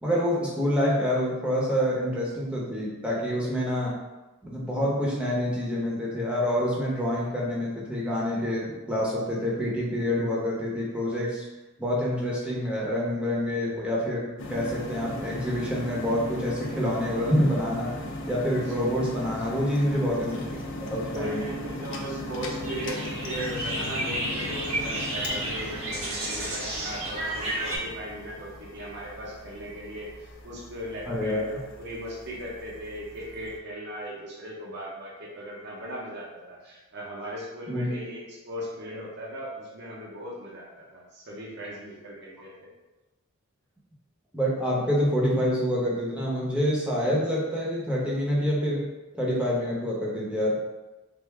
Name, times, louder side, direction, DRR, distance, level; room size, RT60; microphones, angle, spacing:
voice 1, 0.0-4.0 4.4-11.4 11.8-17.9 18.3-20.5 20.9-21.4 31.1-31.5 37.7-37.9 44.3-48.9 49.1-50.6, equal, 5° right, -6 dB, 0.8 m, -27 dB
sound 1, 14.4-33.6, left 1 dB, 60° left, 0.5 m, -38 dB
voice 2, 21.1-42.7, equal, 55° right, -5 dB, 0.7 m, -38 dB
sound 2, 22.6-27.8, right 1 dB, 70° right, 1.3 m, -32 dB
3.4 x 2.5 x 3.3 m, 1.1 s
head